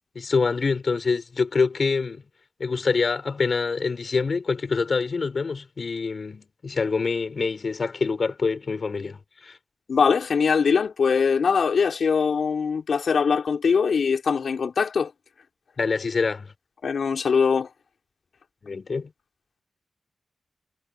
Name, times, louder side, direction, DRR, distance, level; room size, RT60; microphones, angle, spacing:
voice 1, 0.1-2.2 2.6-9.6 15.8-16.5 18.6-19.1, left 4 dB, 55° left, 6.0 m, -25 dB
voice 2, 9.9-15.1 16.8-17.7, left 6 dB, 80° left, 4.6 m, -22 dB
wide cardioid pair, 125°, 0 cm